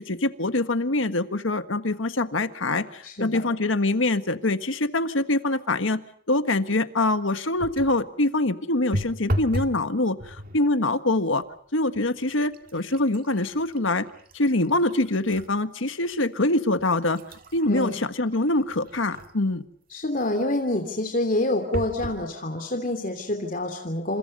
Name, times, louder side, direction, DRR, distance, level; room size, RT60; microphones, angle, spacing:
voice 1, 0.0-6.0 6.3-11.4 11.7-14.1 14.3-17.2 17.5-19.6, left 2 dB, 80° left, 10 dB, 1.6 m, -24 dB
voice 2, 3.0-3.4 17.7-18.0 19.9-24.2, left 1 dB, 45° left, 5 dB, 3.0 m, -27 dB
sound 1, 7.6-8.0 8.9-9.8 10.2-10.7 11.4-11.6 11.9-15.5 16.0-16.1 16.8-19.5 21.7-22.2 22.9-23.0 23.3-23.4, equal, 45° right, 2.1 m, -34 dB
29.5 x 27.5 x 5.4 m, 0.62 s
head